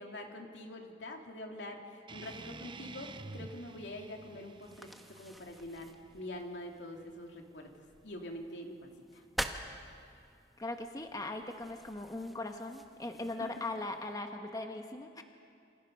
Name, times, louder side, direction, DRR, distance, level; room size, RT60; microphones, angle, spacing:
voice 1, 0.0-7.7 8.0-9.2 13.1-13.3, left 1 dB, 80° left, 2 dB, 2.8 m, -45 dB
sound 1, 2.1-7.1, right 3 dB, 30° right, 0.7 m, -50 dB
sound 2, 2.2-14.1, equal, ahead, 1.2 m, -48 dB
voice 2, 10.6-15.2, left 2 dB, 20° left, 5 dB, 1.2 m, -39 dB
28.5 x 27.0 x 5.4 m, 2.5 s
head